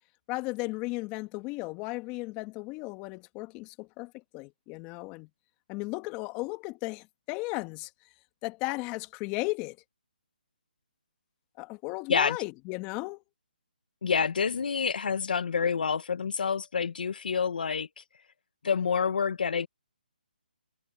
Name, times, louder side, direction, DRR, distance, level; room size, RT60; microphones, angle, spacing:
voice 1, 0.3-5.3 5.7-7.9 8.4-9.8 11.6-13.2, left 24 dB, 20° left, 1.6 m, -35 dB
voice 2, 14.0-18.0 18.6-19.7, left 6 dB, 60° left, 1.2 m, -28 dB
hypercardioid pair, 155°, 5 cm